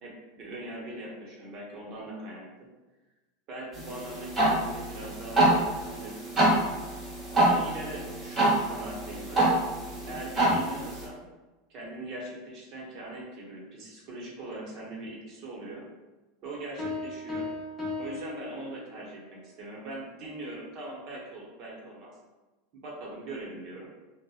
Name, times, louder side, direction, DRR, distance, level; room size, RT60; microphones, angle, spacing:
voice 1, 0.0-2.5 3.5-6.2 7.3-9.5 10.1-11.2 11.7-15.8 16.4-17.5 18.0-22.2 22.7-23.9, right 2 dB, 50° right, -2 dB, 0.7 m, -41 dB
sound 1, 3.7-11.1, right 1 dB, 15° right, 1.1 m, -26 dB
sound 2, 16.8-19.2, left 3 dB, 15° left, 0.7 m, -36 dB
2.7 x 2.0 x 2.3 m, 1.2 s
supercardioid pair, 115°, 0 cm